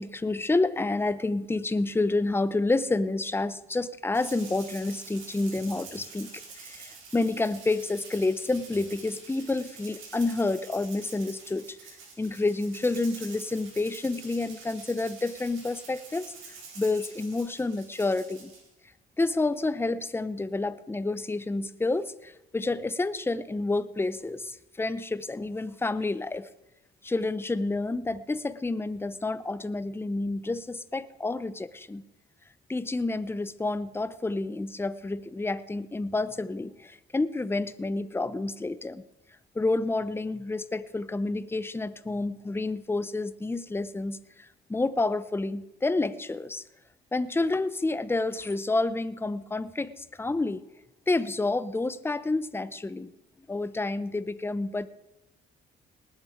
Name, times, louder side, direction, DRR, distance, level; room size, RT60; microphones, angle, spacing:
voice 1, 0.0-6.3 6.6-11.8 12.2-16.3 16.8-18.5 19.2-26.5 27.0-32.0 32.7-39.0 39.5-46.6 47.1-50.6 51.1-53.1 53.5-54.9, left 2 dB, 10° left, 15 dB, 0.7 m, -29 dB
Rattle (instrument), 4.1-18.7, right 4 dB, 80° right, 4.7 m, -47 dB
19.0 x 8.9 x 5.0 m, 0.89 s
cardioid pair, 90°, 20 cm